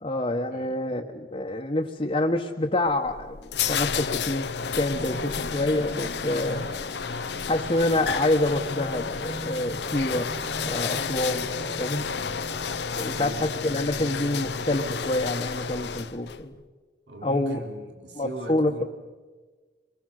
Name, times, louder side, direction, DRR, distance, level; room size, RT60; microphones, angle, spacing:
voice 1, 0.0-4.5 4.7-6.7 7.5-10.3 10.6-11.5 11.8-12.1 13.0-16.5 17.2-17.6 18.1-18.8, left 1 dB, 35° left, 0 dB, 1.2 m, -27 dB
sound 1, 2.9-16.4, left 6 dB, 75° left, 0.8 m, -31 dB
sound 2, 4.8-15.3, right 2 dB, 40° right, 1.8 m, -42 dB
voice 2, 6.4-6.7 12.0-12.6 12.9-13.5 15.7-16.0 17.1-18.8, right 1 dB, 90° right, 3 dB, 3.5 m, -40 dB
25.0 x 23.5 x 6.6 m, 1.4 s
head